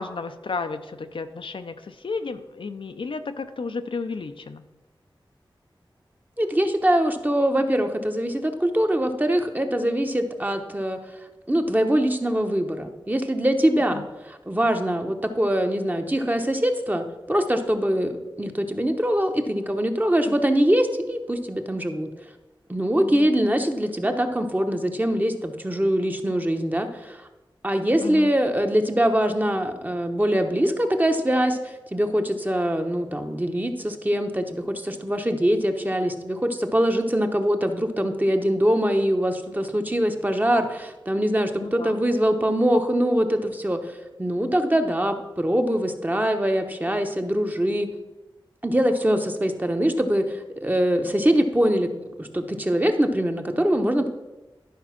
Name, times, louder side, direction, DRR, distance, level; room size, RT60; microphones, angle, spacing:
voice 1, 0.0-4.7 13.9-14.0 20.3-20.4 23.0-23.3 28.0-28.3 41.5-42.0, left 4 dB, 75° left, 8 dB, 0.6 m, -33 dB
voice 2, 6.4-11.0 11.5-18.1 18.4-22.1 22.7-27.2 27.6-31.6 31.9-47.9 48.6-51.9 52.2-54.1, equal, 20° right, 5 dB, 1.0 m, -23 dB
11.5 x 5.4 x 5.8 m, 1.1 s
wide cardioid pair, 65°, 9 cm